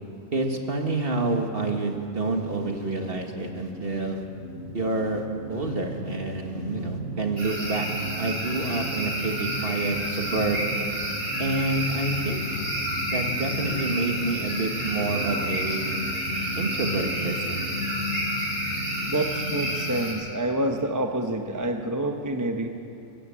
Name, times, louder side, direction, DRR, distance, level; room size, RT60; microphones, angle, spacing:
voice 1, 0.3-4.2 4.7-7.9 8.2-10.7 11.4-12.6 13.1-15.9 16.6-17.7, right 2 dB, 40° right, 3 dB, 2.0 m, -28 dB
sound 1, 0.7-20.0, left 1 dB, 50° left, 2.1 m, -36 dB
sound 2, 7.4-20.1, right 1 dB, 75° right, 5.0 m, -30 dB
voice 2, 19.1-22.7, right 1 dB, 15° right, 4 dB, 0.8 m, -27 dB
24.0 x 13.5 x 8.8 m, 2.6 s
omnidirectional pair, 1.5 m